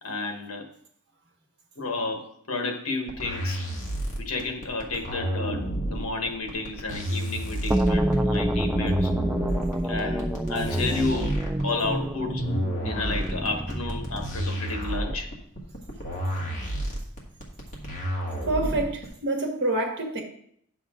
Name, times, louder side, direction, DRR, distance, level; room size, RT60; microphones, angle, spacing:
voice 1, 0.0-0.7 1.8-3.6 4.2-5.6 5.9-9.1 9.8-15.3 16.7-16.8 17.7-17.9, left 3 dB, 75° left, 4 dB, 1.3 m, -32 dB
sound 1, 3.1-19.1, equal, 35° left, 1.8 m, -31 dB
sound 2, 7.7-14.6, right 1 dB, 5° right, 0.3 m, -27 dB
voice 2, 18.4-20.2, right 2 dB, 55° right, 1 dB, 1.7 m, -27 dB
9.4 x 7.0 x 3.7 m, 0.66 s
head